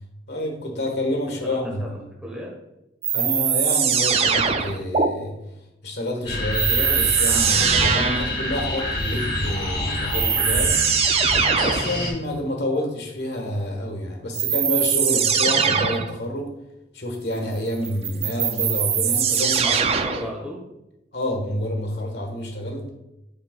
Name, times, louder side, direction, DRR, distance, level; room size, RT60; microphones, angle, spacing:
voice 1, 0.3-2.0 3.1-5.4 5.8-10.8 11.6-16.6 16.9-19.7 20.1-20.3 21.1-22.8, left 1 dB, 70° left, 1 dB, 1.5 m, -28 dB
voice 2, 1.4-1.9 2.2-2.5 11.8-12.0 19.6-20.6, equal, 5° right, -3 dB, 1.2 m, -35 dB
sound 1, 3.0-5.1 6.5-8.4 9.6-9.7 10.1-12.0 14.3-16.1 17.8-20.3, right 7 dB, 35° right, 0.4 m, -21 dB
sound 2, 6.2-12.1, left 1 dB, 30° left, 1.6 m, -27 dB
7.6 x 5.2 x 2.4 m, 0.90 s
head